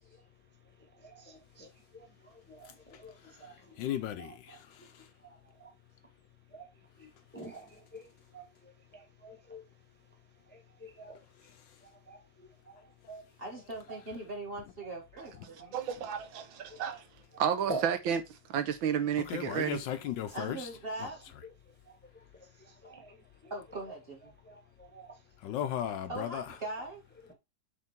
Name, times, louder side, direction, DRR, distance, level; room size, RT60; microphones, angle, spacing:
voice 1, 0.6-5.8 6.5-13.4 13.9-14.0 15.2-15.7 16.2-16.3 16.7-17.0 17.3-17.4 17.7-17.9 19.3-19.7 20.3-20.5 20.9-24.0 24.3-25.5 26.8-26.9 27.2-27.3, right 2 dB, 5° left, 0.9 m, -49 dB
voice 2, 3.3-5.1 19.2-20.7 25.4-26.5, left 10 dB, 75° left, 1.2 m, -36 dB
voice 3, 13.4-15.7 20.3-21.2 23.5-24.2 26.1-27.0, right 2 dB, 30° right, 2.3 m, -40 dB
voice 4, 15.7-17.0 17.4-18.2 18.5-19.8, right 8 dB, 75° right, 1.6 m, -31 dB
7.3 x 3.7 x 4.3 m
omnidirectional pair, 2.2 m